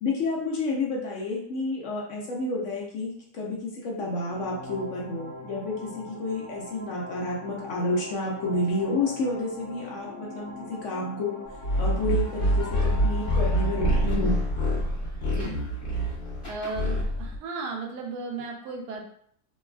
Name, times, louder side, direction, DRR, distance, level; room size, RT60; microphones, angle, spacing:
voice 1, 0.0-10.5 10.8-11.4 11.8-14.4, left 2 dB, 65° left, -3 dB, 0.7 m, -30 dB
sound 1, 4.0-14.0, left 1 dB, 90° left, 1.2 m, -42 dB
sound 2, 11.6-17.4, equal, 30° left, 1.2 m, -26 dB
voice 2, 15.2-15.6 16.4-19.0, right 3 dB, 70° right, 0 dB, 1.1 m, -35 dB
3.2 x 2.2 x 2.2 m, 0.66 s
omnidirectional pair, 1.8 m